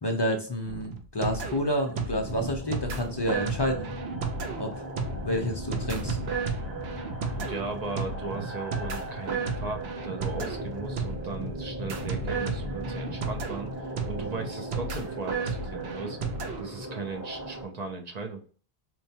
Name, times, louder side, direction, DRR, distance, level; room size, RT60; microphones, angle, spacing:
voice 1, 0.0-3.9 4.5-4.7 5.2-6.2, equal, 35° left, 3 dB, 0.4 m, -29 dB
sound 1, 0.7-16.6, right 4 dB, 80° right, 0.9 m, -33 dB
sound 2, 2.2-17.7, left 1 dB, 15° right, 1.1 m, -38 dB
voice 2, 7.3-13.7 14.1-16.2 16.6-18.4, right 3 dB, 50° right, 3 dB, 0.6 m, -37 dB
4.4 x 2.2 x 2.7 m, 0.41 s
omnidirectional pair, 1.0 m